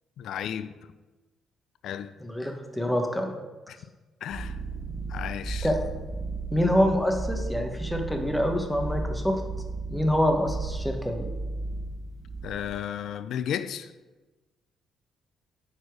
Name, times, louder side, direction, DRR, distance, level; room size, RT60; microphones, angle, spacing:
voice 1, 0.2-0.8 1.8-2.1 3.7-3.8 4.2-4.6 5.1-5.7 12.4-13.9, left 9 dB, 75° left, 0.4 m, -33 dB
voice 2, 2.2-3.3 5.6-5.8 6.5-9.4 9.9-11.3, equal, 5° left, 1.3 m, -26 dB
sound 1, 4.3-12.8, right 3 dB, 15° right, 1.8 m, -34 dB
9.4 x 4.3 x 4.8 m
cardioid pair, 90°, 0 cm